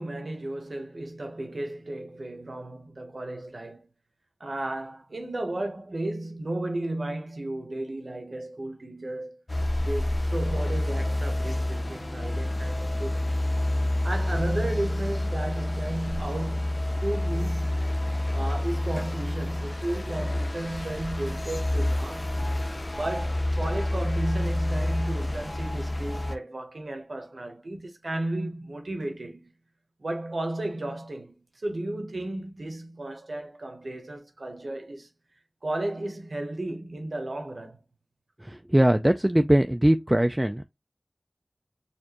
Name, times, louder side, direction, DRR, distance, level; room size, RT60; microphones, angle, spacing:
voice 1, 0.0-3.9 4.4-9.4 9.8-13.4 14.0-17.8 18.3-22.4 22.9-29.5 30.0-35.1 35.6-37.8, right 1 dB, 90° right, 1.0 m, -34 dB
sound 1, 9.5-26.4, left 1 dB, 50° left, 0.6 m, -28 dB
voice 2, 38.4-40.6, right 1 dB, 20° right, 0.3 m, -21 dB
4.3 x 2.5 x 2.9 m
wide cardioid pair, 55°, 0 cm